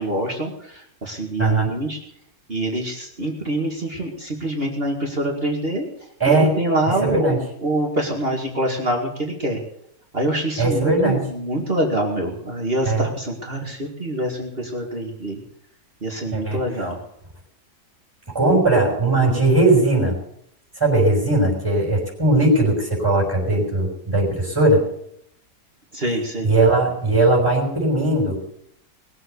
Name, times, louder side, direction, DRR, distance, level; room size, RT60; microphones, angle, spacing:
voice 1, 0.0-2.0 2.5-5.9 6.2-9.6 10.1-15.4 16.0-17.0 25.9-26.5, right 1 dB, 35° right, 0 dB, 2.4 m, -25 dB
voice 2, 1.4-1.7 6.2-6.5 6.9-7.4 10.6-11.3 12.8-13.0 16.3-16.6 18.3-20.2 20.8-24.9 26.4-28.4, right 2 dB, 10° right, -2 dB, 6.0 m, -18 dB
20.5 x 7.9 x 8.1 m, 0.73 s
omnidirectional pair, 1.7 m